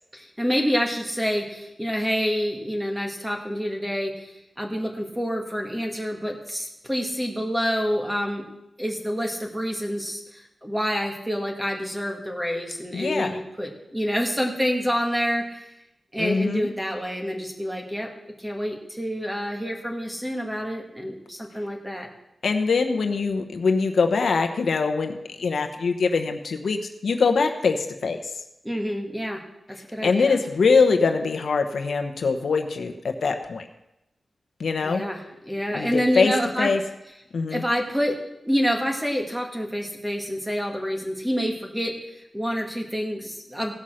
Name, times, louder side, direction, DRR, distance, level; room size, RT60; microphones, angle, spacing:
voice 1, 0.1-8.4 8.8-13.3 13.6-15.7 16.1-18.1 18.4-22.1 28.6-29.4 29.8-30.4 34.8-36.7 37.5-38.2 38.4-43.7, equal, 5° right, 1 dB, 2.1 m, -27 dB
voice 2, 12.9-13.4 16.2-16.7 22.4-28.4 30.0-33.7 34.6-35.0 35.7-36.3 36.6-36.8 37.3-37.6, left 4 dB, 80° left, 6 dB, 0.9 m, -23 dB
16.5 x 5.7 x 6.4 m, 0.90 s
wide cardioid pair, 85°, 0 cm